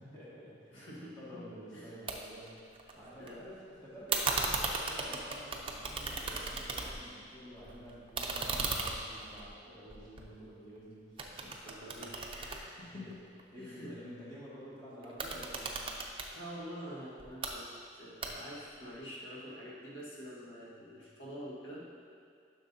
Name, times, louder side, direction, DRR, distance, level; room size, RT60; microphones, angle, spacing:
voice 1, 0.0-0.8 1.2-2.6 2.9-11.3 11.7-12.0 12.8-13.1 13.5-15.9, equal, 20° left, -10 dB, 1.9 m, -50 dB
voice 2, 0.7-1.4 1.7-2.0 3.2-3.4 11.4-13.2 13.6-14.0 16.3-21.8, equal, 85° left, -6 dB, 1.5 m, -46 dB
sound 1, 2.1-2.2 2.5-3.3 4.1-7.2 7.5-10.8 11.2-13.4 15.0-16.3 17.2-17.5 18.2-18.7, right 4 dB, 30° right, 0.5 m, -36 dB
10.5 x 6.1 x 2.7 m, 2.2 s
head